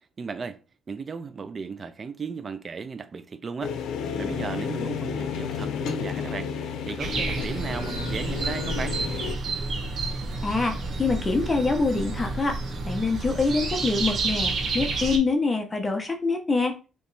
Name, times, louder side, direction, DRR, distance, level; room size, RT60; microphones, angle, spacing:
voice 1, 0.2-0.6 0.9-3.7 4.2-9.0, right 5 dB, 40° right, 0.4 m, -35 dB
sound 1, 3.6-9.3, left 7 dB, 85° left, 0.6 m, -32 dB
sound 2, 7.0-15.2, right 3 dB, 60° right, 1.2 m, -30 dB
voice 2, 10.4-12.6 12.9-16.8, left 3 dB, 25° left, 0.9 m, -25 dB
3.3 x 3.1 x 4.0 m
cardioid pair, 90°, 0 cm